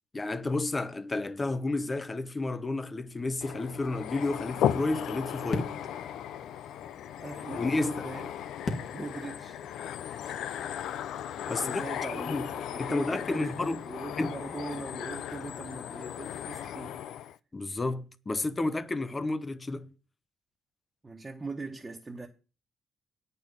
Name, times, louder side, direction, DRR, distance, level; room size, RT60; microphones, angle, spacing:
voice 1, 0.1-5.9 7.6-8.1 11.5-11.8 12.1-12.5 12.8-13.8 14.2-14.3 17.5-19.9, left 2 dB, 25° left, 0.8 m, -31 dB
sound 1, 3.4-17.4, left 10 dB, 80° left, 0.4 m, -36 dB
sound 2, 5.5-11.8, left 3 dB, 55° left, 2.2 m, -42 dB
voice 2, 7.2-8.3 8.9-9.6 11.5-13.6 13.9-17.0 21.0-22.3, right 3 dB, 20° right, 1.3 m, -41 dB
9.0 x 5.5 x 7.4 m
cardioid pair, 90°, 0 cm